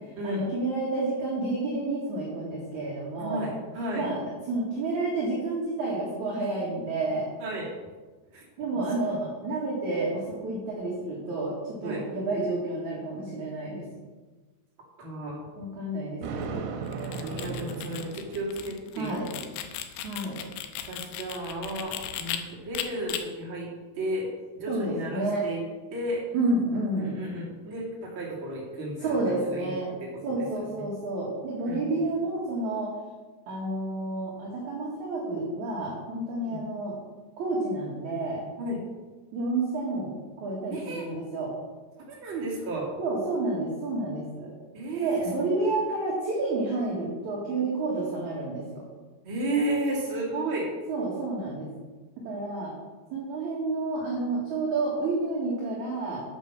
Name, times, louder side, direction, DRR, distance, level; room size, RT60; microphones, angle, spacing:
voice 1, 0.2-3.5 4.0-4.2 4.5-7.2 8.6-11.5 11.8-13.9 15.6-16.6 18.9-19.3 20.0-20.4 24.7-25.4 26.3-27.2 29.0-29.9 30.2-32.9 33.5-36.9 37.4-38.4 39.3-40.1 40.4-41.5 43.0-44.5 44.9-48.8 50.9-51.7 52.2-52.7 53.1-56.2, right 2 dB, 50° right, -5 dB, 2.5 m, -30 dB
voice 2, 3.2-4.1 7.4-7.7 8.3-8.4 8.7-8.8 9.1-9.2 11.8-12.0 15.0-15.4 17.2-19.4 20.9-23.7 24.0-24.3 24.6-25.6 25.9-26.2 27.0-30.5 30.8-30.9 31.6-32.0 36.4-36.6 38.6-38.8 40.7-41.1 42.1-42.9 44.7-45.6 49.2-50.7, right 1 dB, 30° right, -4 dB, 2.7 m, -33 dB
Thunder, 16.2-18.7, right 4 dB, 80° right, 3.3 m, -36 dB
sound 1, 16.9-22.4 22.7-23.2, left 11 dB, 80° left, 2.7 m, -36 dB
8.9 x 8.5 x 6.1 m, 1.3 s
omnidirectional pair, 5.6 m